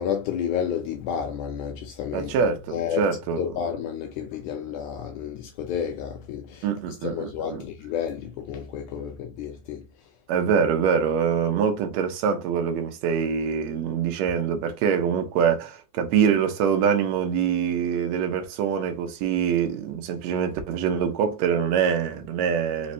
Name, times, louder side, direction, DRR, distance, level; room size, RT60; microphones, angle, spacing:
voice 1, 0.0-2.4 2.7-3.1 3.4-10.2, left 8 dB, 80° left, 2.0 m, -31 dB
voice 2, 2.1-3.4 6.6-7.1 7.5-7.6 10.3-22.9, right 7 dB, 70° right, 1.8 m, -24 dB
5.0 x 3.2 x 2.6 m
omnidirectional pair, 3.7 m